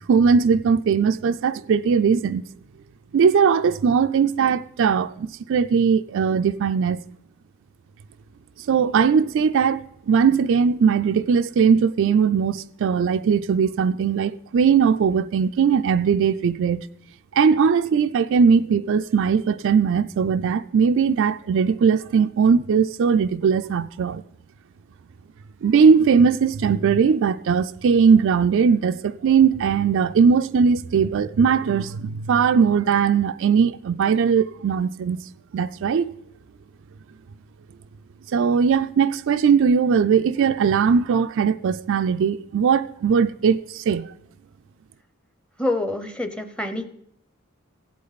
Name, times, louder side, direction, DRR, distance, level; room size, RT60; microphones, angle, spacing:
voice 1, 0.1-2.4 3.1-7.0 8.7-16.9 17.4-24.2 25.6-35.2 35.5-36.1 38.3-44.1, right 6 dB, 60° right, 0.4 m, -19 dB
voice 2, 45.6-46.9, left 2 dB, 5° left, 0.7 m, -26 dB
16.0 x 8.4 x 4.1 m
head